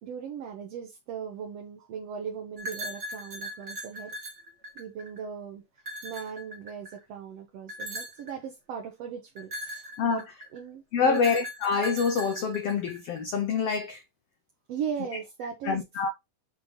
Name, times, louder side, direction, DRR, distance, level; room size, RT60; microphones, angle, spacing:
voice 1, 0.0-4.1 4.8-5.6 6.0-10.2 10.5-11.4 14.7-15.8, right 7 dB, 65° right, 1.9 m, -38 dB
sound 1, 2.6-5.2 5.8-7.0 7.7-8.3 9.4-10.6 11.1-13.2, equal, 45° right, 0.9 m, -39 dB
voice 2, 10.9-14.0 15.6-16.1, left 5 dB, 85° left, 1.3 m, -26 dB
7.2 x 3.7 x 3.8 m
omnidirectional pair, 3.8 m